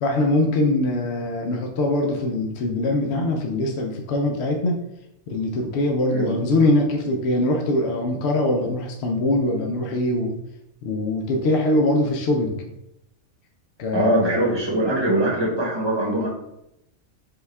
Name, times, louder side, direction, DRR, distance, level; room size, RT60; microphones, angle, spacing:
voice 1, 0.0-4.8 5.3-10.4 10.8-12.6 13.8-14.3, left 1 dB, 65° left, 1 dB, 0.7 m, -22 dB
voice 2, 13.9-16.3, right 1 dB, 20° right, -4 dB, 0.9 m, -22 dB
5.4 x 2.3 x 3.3 m, 0.82 s
omnidirectional pair, 1.5 m